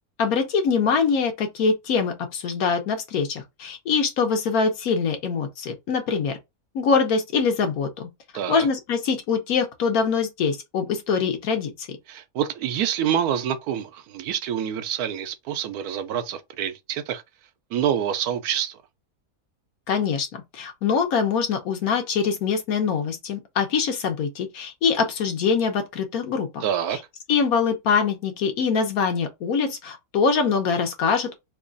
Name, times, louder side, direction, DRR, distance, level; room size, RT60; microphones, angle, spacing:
voice 1, 0.2-6.4 6.7-8.1 8.5-11.9 19.9-20.3 20.5-26.6 27.3-31.3, left 5 dB, 75° left, 1.3 m, -23 dB
voice 2, 8.3-8.7 12.1-17.2 17.7-18.8 26.6-27.0, right 9 dB, 85° right, 1.1 m, -27 dB
3.1 x 2.3 x 3.7 m
omnidirectional pair, 1.6 m